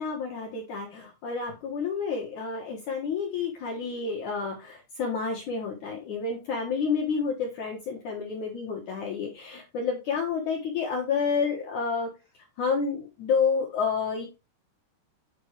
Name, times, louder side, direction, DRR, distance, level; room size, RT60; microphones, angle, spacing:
voice 1, 0.0-12.1 12.6-14.3, left 5 dB, 75° left, -1 dB, 1.8 m, -29 dB
8.9 x 6.0 x 3.3 m, 0.28 s
omnidirectional pair, 5.5 m